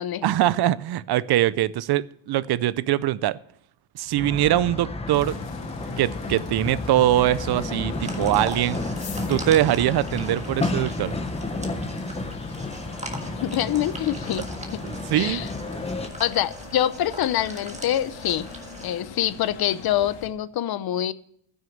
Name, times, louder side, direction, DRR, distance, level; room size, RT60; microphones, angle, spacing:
voice 1, 0.2-3.4 3.9-5.4 6.0-8.8 9.3-11.2 14.8-15.4, right 13 dB, 60° right, 18 dB, 0.6 m, -22 dB
sound 1, 4.1-16.1, left 2 dB, 15° left, 0.9 m, -32 dB
sound 2, 5.1-20.3, left 6 dB, 75° left, 1.9 m, -42 dB
sound 3, 8.0-19.0, right 2 dB, 15° right, 1.6 m, -41 dB
voice 2, 13.3-14.4 15.1-15.5 16.2-18.5 18.8-21.1, left 11 dB, 55° left, 16 dB, 0.7 m, -25 dB
14.5 x 6.4 x 7.1 m, 0.67 s
cardioid pair, 160°, 45 cm